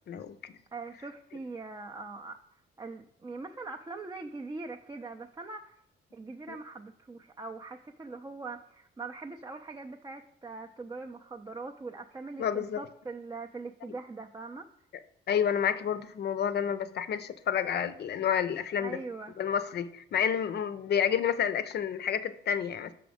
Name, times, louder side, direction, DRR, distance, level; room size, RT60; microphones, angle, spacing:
voice 1, 0.1-0.6 6.5-6.6 12.4-12.8 15.3-19.0 19.4-22.9, left 8 dB, 55° left, 13 dB, 0.5 m, -29 dB
voice 2, 0.7-2.4 2.8-5.8 6.1-14.7 18.8-19.3, right 3 dB, 20° right, 3 dB, 0.4 m, -42 dB
6.0 x 5.0 x 4.9 m, 0.75 s
cardioid pair, 90°, 20 cm